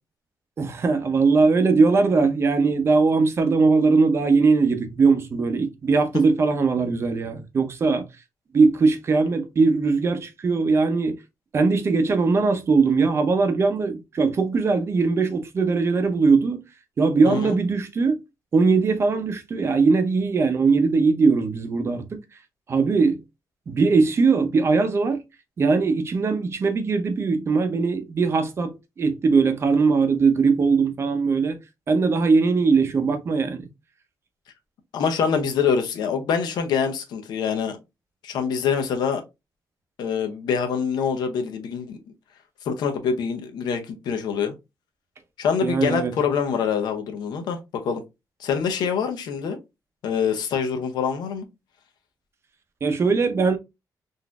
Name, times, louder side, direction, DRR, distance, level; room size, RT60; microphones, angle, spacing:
voice 1, 0.6-8.1 8.5-11.1 11.5-16.6 17.0-18.2 18.5-22.2 22.7-23.2 23.7-25.2 25.6-31.6 31.9-33.7 45.6-46.2 52.8-53.6, right 4 dB, 40° right, 0.6 m, -20 dB
voice 2, 17.2-17.6 34.9-37.8 38.2-39.2 40.0-42.0 42.6-44.5 45.4-48.0 48.4-49.6 50.0-51.5, left 6 dB, 90° left, 0.7 m, -25 dB
3.9 x 2.6 x 2.2 m
cardioid pair, 130°, 7 cm